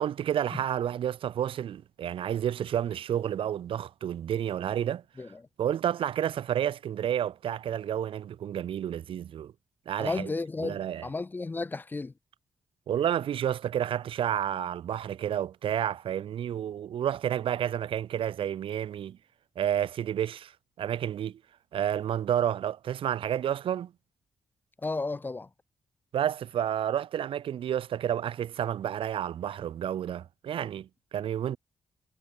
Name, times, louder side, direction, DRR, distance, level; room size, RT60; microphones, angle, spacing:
voice 1, 0.0-5.0 5.6-9.5 9.9-10.3 10.6-11.1 12.9-19.2 19.6-20.5 20.8-21.4 21.7-23.9 26.1-31.6, right 10 dB, 80° right, 1.8 m, -30 dB
voice 2, 10.0-12.1 24.8-25.5, left 3 dB, 20° left, 0.9 m, -33 dB
wide cardioid pair, 130°, 9 cm